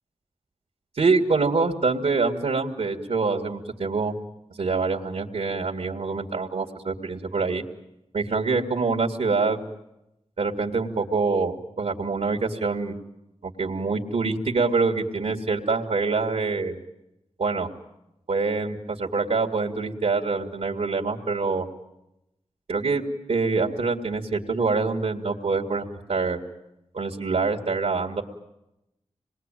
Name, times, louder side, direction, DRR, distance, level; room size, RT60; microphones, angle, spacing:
voice 1, 1.0-4.2 4.6-7.6 8.1-9.6 10.4-13.0 13.4-16.8 17.4-17.7 18.3-21.7 22.7-23.0 23.3-26.4 26.9-28.2, right 4 dB, 75° right, 1 dB, 2.2 m, -25 dB
26.5 x 21.0 x 9.1 m, 0.90 s
wide cardioid pair, 75°, 12 cm